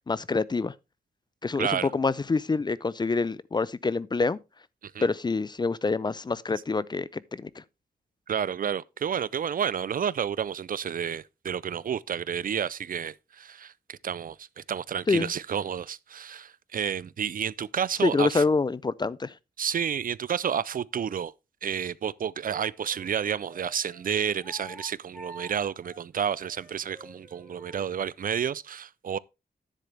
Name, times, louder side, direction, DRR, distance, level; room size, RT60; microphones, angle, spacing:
voice 1, 0.1-0.7 1.4-4.4 5.0-7.5 15.1-15.3 18.0-19.3, left 4 dB, 25° left, 0.4 m, -26 dB
voice 2, 1.6-1.9 4.8-5.1 8.3-18.4 19.6-21.3 21.6-29.2, right 8 dB, 60° right, 0.4 m, -30 dB
Wind instrument woodwind instrument, 22.4-27.9, right 1 dB, ahead, 3.8 m, -48 dB
10.0 x 7.6 x 3.3 m
wide cardioid pair, 110°, 16 cm